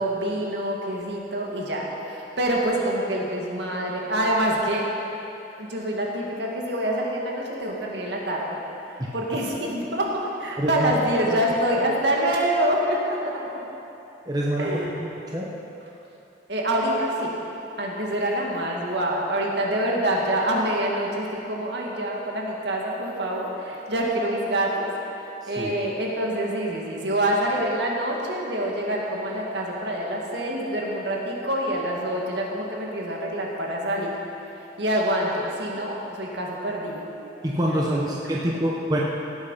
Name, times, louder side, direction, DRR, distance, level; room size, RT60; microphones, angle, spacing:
voice 1, 0.0-4.9 5.6-8.6 8.8-13.4 14.6-14.9 16.5-17.3 17.8-24.9 25.5-34.1 34.8-37.1 37.7-38.0 38.5-38.6, right 1 dB, 65° right, -2 dB, 2.1 m, -26 dB
voice 2, 10.6-11.0 11.3-11.4 11.7-11.8 14.2-15.5 25.4-25.7 37.4-39.0, right 1 dB, 20° right, -3 dB, 1.0 m, -26 dB
17.5 x 8.7 x 5.7 m, 2.9 s
head